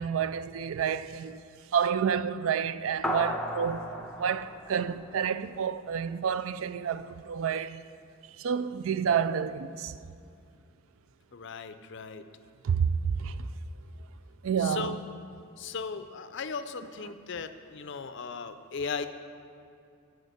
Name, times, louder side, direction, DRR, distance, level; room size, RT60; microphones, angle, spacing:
voice 1, 0.0-1.4 1.7-7.8 8.4-10.0 12.6-13.5 14.4-15.0, right 7 dB, 70° right, 0.4 m, -29 dB
sound 1, 3.0-5.7, left 1 dB, 5° left, 0.5 m, -35 dB
voice 2, 11.3-12.2 14.6-15.0 15.6-19.1, left 5 dB, 55° left, 0.5 m, -37 dB
9.3 x 6.4 x 8.0 m
head